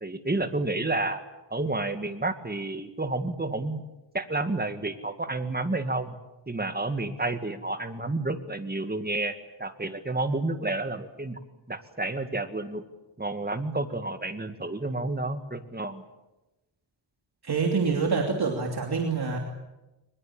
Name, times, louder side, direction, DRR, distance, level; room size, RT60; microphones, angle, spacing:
voice 1, 0.0-1.2 1.5-3.8 4.1-6.2 6.5-11.4 11.7-12.8 13.2-16.0, right 2 dB, 20° right, 8 dB, 2.1 m, -30 dB
voice 2, 17.4-19.4, right 4 dB, 55° right, 1 dB, 3.0 m, -26 dB
23.0 x 21.5 x 8.9 m, 1.0 s
wide cardioid pair, 110°, 45 cm